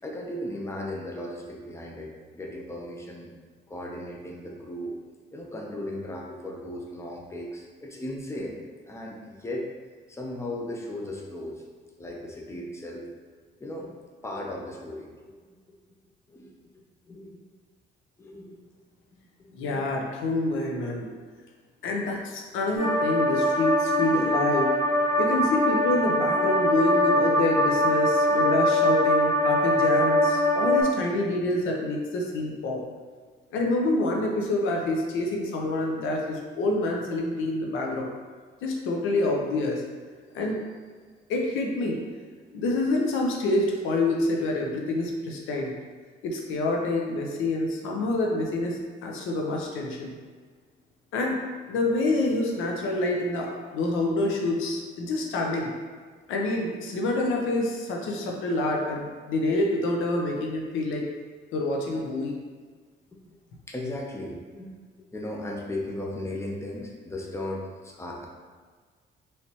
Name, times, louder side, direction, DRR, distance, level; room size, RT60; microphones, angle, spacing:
voice 1, 0.0-3.3 3.7-4.9 5.3-8.6 8.9-9.7 10.1-11.6 12.0-13.1 13.6-13.9 14.2-15.4 16.3-16.5 17.1-17.4 18.2-18.6 63.1-63.2 63.7-68.3, left 1 dB, 15° left, -1 dB, 0.7 m, -36 dB
voice 2, 19.5-21.1 21.8-24.7 25.2-32.8 33.5-38.1 38.6-39.8 40.3-40.7 41.3-42.0 42.5-45.8 46.2-50.2 51.1-55.7 56.3-61.1 61.5-62.3, left 2 dB, 90° left, 0 dB, 0.7 m, -27 dB
sound 1, 22.7-30.8, equal, 50° left, 1.4 m, -23 dB
4.1 x 3.2 x 2.9 m, 1.6 s
cardioid pair, 90°, 20 cm